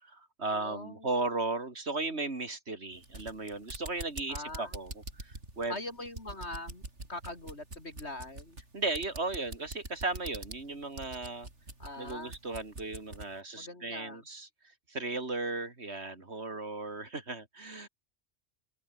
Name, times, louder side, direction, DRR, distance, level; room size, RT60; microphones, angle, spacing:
voice 1, 0.0-5.8 8.7-11.5 12.0-14.5 14.9-17.9, right 3 dB, 65° right, 3.5 m, -36 dB
voice 2, 0.5-1.1 4.3-4.8 5.7-6.8 7.1-8.6 11.8-12.4 13.5-14.3, left 2 dB, 70° left, 5.6 m, -42 dB
sound 1, 2.9-13.4, right 2 dB, 85° right, 5.2 m, -45 dB
open air
omnidirectional pair, 1.2 m